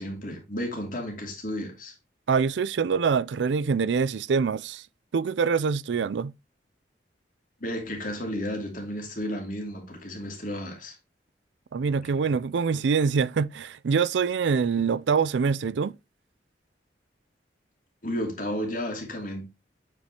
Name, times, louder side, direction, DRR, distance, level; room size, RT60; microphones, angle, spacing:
voice 1, 0.0-1.9 7.6-11.0 18.0-19.5, equal, 45° left, 2.6 m, -33 dB
voice 2, 2.3-4.9 5.1-6.3 11.7-16.0, right 5 dB, 80° right, 0.4 m, -25 dB
8.2 x 5.2 x 2.9 m
head